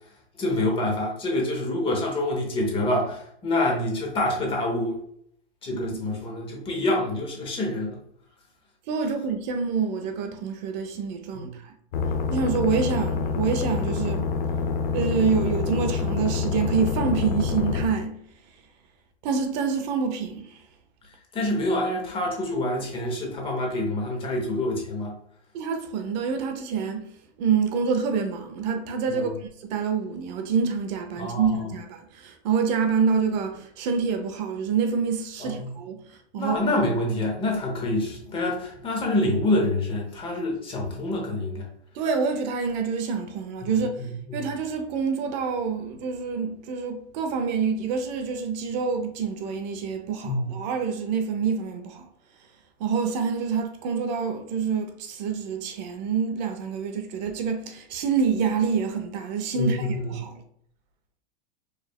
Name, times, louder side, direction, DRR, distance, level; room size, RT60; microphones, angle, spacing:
voice 1, 0.4-5.0 5.6-8.0 11.3-11.5 21.3-25.2 29.1-29.3 31.2-31.6 35.4-35.7 36.4-41.7 44.0-44.4 50.2-50.5 59.5-60.1, left 1 dB, 15° left, 0.8 m, -26 dB
voice 2, 5.7-6.2 8.9-11.7 12.3-14.3 14.9-18.2 19.2-20.6 25.5-27.1 27.4-29.3 29.6-36.0 36.3-36.6 41.9-44.0 44.3-52.1 52.8-60.4, right 5 dB, 40° right, 0.6 m, -27 dB
sound 1, 11.9-17.9, left 5 dB, 55° left, 0.6 m, -27 dB
4.8 x 3.2 x 2.2 m
supercardioid pair, 155°, 34 cm